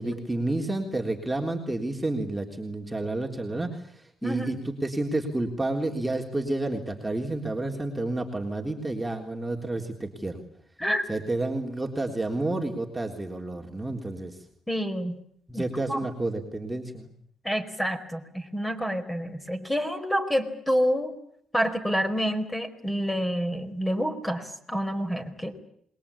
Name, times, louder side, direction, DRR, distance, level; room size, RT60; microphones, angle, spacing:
voice 1, 0.0-10.4 11.1-14.4 15.5-17.1, right 2 dB, 10° right, 0 dB, 3.7 m, -30 dB
voice 2, 4.2-4.6 10.8-11.1 14.7-15.2 15.5-15.6 15.9-16.0 17.4-21.1 21.5-25.5, equal, 5° left, 7 dB, 4.6 m, -28 dB
27.5 x 21.5 x 8.8 m, 0.68 s
cardioid pair, 90°, 0 cm